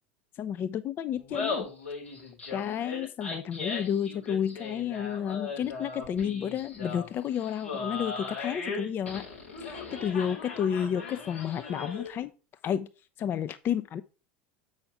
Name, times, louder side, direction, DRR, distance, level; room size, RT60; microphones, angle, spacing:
voice 1, 0.3-1.7 2.5-9.3 9.6-12.3 12.6-12.9 13.2-14.0, left 9 dB, 35° left, 13 dB, 0.5 m, -31 dB
Laughter, 1.1-12.2, left 4 dB, 90° left, 4.2 m, -38 dB
7.7 x 5.7 x 4.7 m, 0.33 s
figure-of-eight pair, 75°, 6 cm